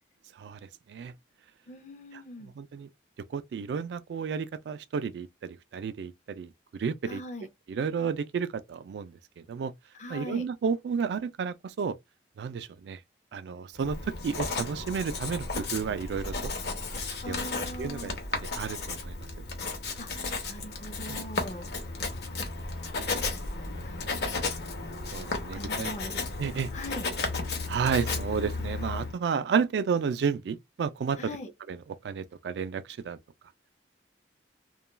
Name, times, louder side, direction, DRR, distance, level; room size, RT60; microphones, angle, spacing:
voice 1, 0.4-1.1 2.6-2.9 3.3-7.2 7.7-9.2 9.5-9.7 10.1-12.0 12.4-13.0 13.3-16.5 17.3-17.4 17.8-18.2 18.6-19.2 25.1-25.9 26.4-26.7 27.7-31.2 31.7-31.8 32.0-33.2, right 6 dB, 75° right, 0.3 m, -31 dB
voice 2, 1.7-2.5 7.0-7.5 9.9-10.5 17.2-18.2 20.0-21.7 23.8-24.4 25.5-27.1 31.2-31.5, left 1 dB, 40° left, 0.4 m, -41 dB
Writing, 13.8-29.2, left 3 dB, 65° left, 0.8 m, -34 dB
2.3 x 2.2 x 3.0 m
head